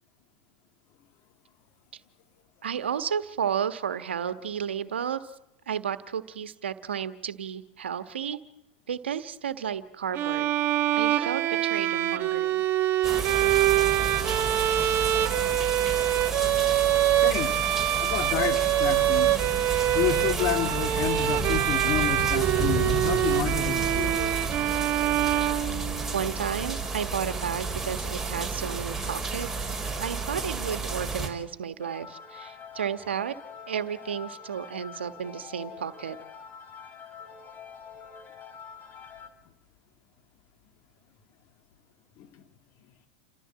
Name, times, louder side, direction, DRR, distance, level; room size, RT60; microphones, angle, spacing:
voice 1, 2.6-5.3 5.7-8.4 8.9-10.5 11.0-12.6 25.7-29.7 30.0-33.3 33.7-36.2, right 8 dB, 85° right, 1.4 m, -32 dB
Bowed string instrument, 10.1-26.2, right 13 dB, 45° right, 1.2 m, -25 dB
sound 1, 13.0-31.3, right 4 dB, 5° right, 4.8 m, -31 dB
voice 2, 17.1-17.6 18.0-19.4 19.9-24.4 42.2-42.4, left 11 dB, 50° left, 2.1 m, -30 dB
sound 2, 31.8-39.3, left 6 dB, 30° left, 3.3 m, -45 dB
29.0 x 15.0 x 7.7 m
hypercardioid pair, 95°, 6 cm